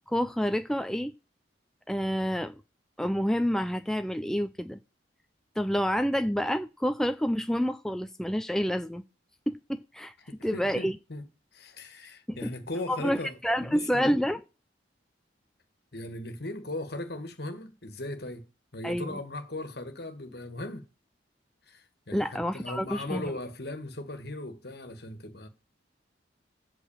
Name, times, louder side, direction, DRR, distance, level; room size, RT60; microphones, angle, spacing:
voice 1, 0.1-1.1 1.9-2.5 3.0-4.8 5.6-9.0 9.5-10.1 10.4-11.0 12.3-12.4 12.9-14.4 18.8-19.2 22.1-23.3, equal, 5° left, 0.4 m, -28 dB
voice 2, 10.3-11.2 11.5-14.3 15.9-18.5 18.7-20.9 21.7-25.5, left 1 dB, 60° left, 1.8 m, -38 dB
8.3 x 6.0 x 7.2 m
head